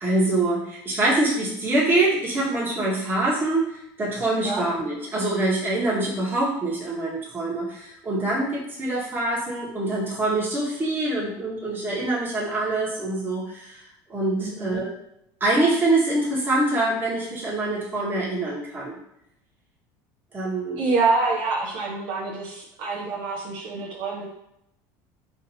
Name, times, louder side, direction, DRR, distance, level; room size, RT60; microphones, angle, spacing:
voice 1, 0.0-13.8 14.1-14.9 15.4-18.9 20.3-20.9, right 2 dB, 20° right, -6 dB, 1.6 m, -25 dB
voice 2, 14.4-14.8 20.8-24.2, right 3 dB, 65° right, -4 dB, 1.3 m, -26 dB
5.2 x 3.3 x 2.8 m, 0.78 s
supercardioid pair, 125°, 10 cm